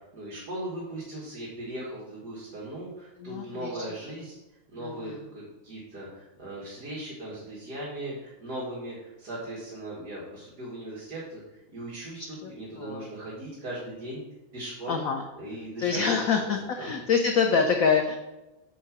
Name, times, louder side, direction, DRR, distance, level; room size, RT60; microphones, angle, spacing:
voice 1, 0.1-4.4 4.7-14.2 14.5-15.0 15.4-16.9, right 1 dB, 50° right, -7 dB, 2.4 m, -38 dB
voice 2, 3.2-3.8 4.8-5.2 12.2-12.5 12.8-13.1 14.9-15.2 15.8-18.2, left 5 dB, 70° left, 4 dB, 0.8 m, -26 dB
6.6 x 4.9 x 5.9 m, 1.0 s
omnidirectional pair, 2.2 m